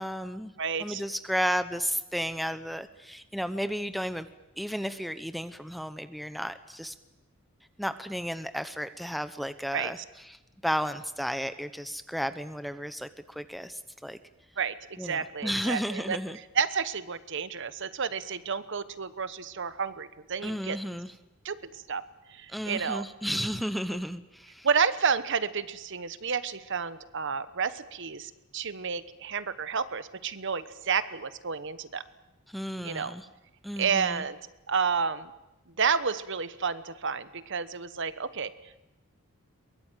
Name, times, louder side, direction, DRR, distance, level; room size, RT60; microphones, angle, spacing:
voice 1, 0.0-0.5 0.8-4.3 4.6-6.9 7.8-10.0 10.3-10.4 10.6-14.2 15.0-16.4 20.4-21.1 22.5-24.7 32.5-33.3 33.6-34.3, equal, ahead, 11 dB, 0.9 m, -33 dB
voice 2, 0.6-1.0 9.7-10.0 14.6-20.8 21.4-22.0 22.3-23.0 24.6-32.0 32.8-33.1 33.8-34.4 34.7-35.3 35.8-38.5, right 6 dB, 60° right, 14 dB, 1.1 m, -30 dB
23.0 x 21.0 x 9.2 m, 0.95 s
head